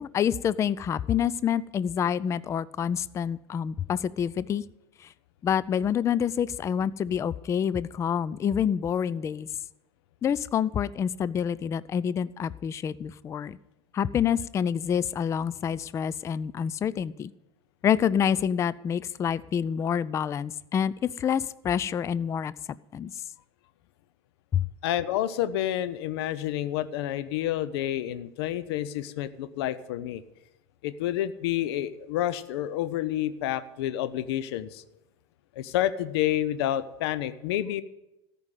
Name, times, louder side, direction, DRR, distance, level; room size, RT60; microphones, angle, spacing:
voice 1, 0.0-4.6 5.4-9.5 10.2-13.6 13.9-17.3 17.8-22.5 22.9-23.1 24.5-24.6, left 8 dB, 20° left, 19 dB, 0.3 m, -27 dB
voice 2, 24.8-30.2 30.8-34.8 35.6-37.8, left 12 dB, 60° left, 15 dB, 0.6 m, -29 dB
14.0 x 5.3 x 9.3 m, 0.95 s
figure-of-eight pair, 85°, 15 cm